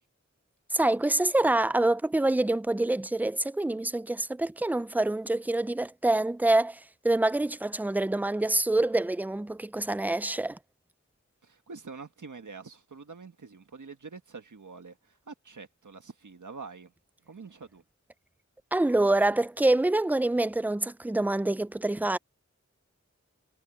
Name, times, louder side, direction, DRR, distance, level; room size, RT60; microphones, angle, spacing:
voice 1, 0.7-10.6 18.7-22.2, right 2 dB, 5° right, 0.4 m, -26 dB
voice 2, 11.4-16.9 17.2-17.8, right 4 dB, 90° right, 1.6 m, -46 dB
wide cardioid pair, 70°, 29 cm